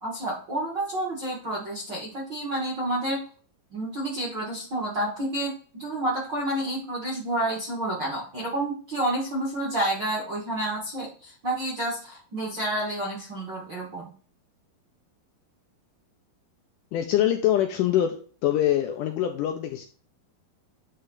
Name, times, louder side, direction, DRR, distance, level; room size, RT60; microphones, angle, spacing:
voice 1, 0.0-3.2 3.7-14.1, right 1 dB, 55° right, -4 dB, 1.2 m, -29 dB
voice 2, 16.9-18.2 18.4-19.9, left 11 dB, 85° left, 5 dB, 1.9 m, -24 dB
9.4 x 3.3 x 4.0 m, 0.42 s
omnidirectional pair, 4.3 m